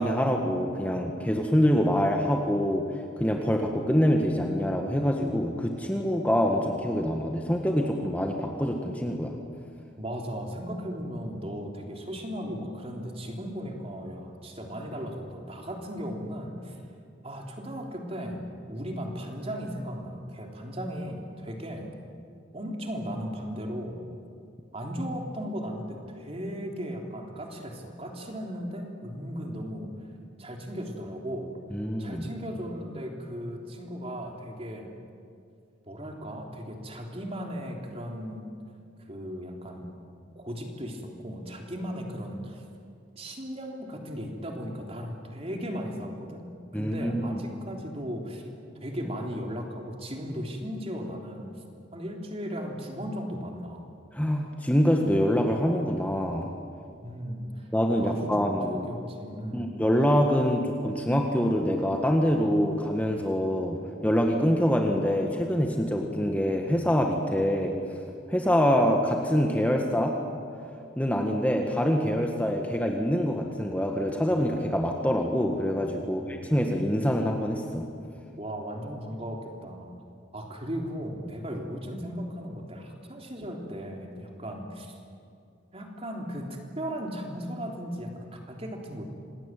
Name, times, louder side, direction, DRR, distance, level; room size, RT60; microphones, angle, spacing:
voice 1, 0.0-2.8 3.2-9.4 31.7-32.3 46.7-47.4 54.1-56.5 57.7-58.9 59.5-63.8 64.0-67.8 68.3-70.1 71.0-77.9, equal, 10° left, 2 dB, 1.6 m, -25 dB
voice 2, 10.0-16.8 17.2-21.9 22.5-24.0 24.7-29.9 30.4-31.5 32.0-34.9 35.9-38.5 39.1-39.9 40.3-42.6 43.2-46.4 46.7-48.5 48.8-51.5 51.9-53.8 57.0-57.7 57.9-59.7 76.0-76.4 78.4-79.9 80.3-85.0 85.7-89.0, equal, 30° right, 1 dB, 3.4 m, -36 dB
27.0 x 20.0 x 9.2 m, 2.4 s
head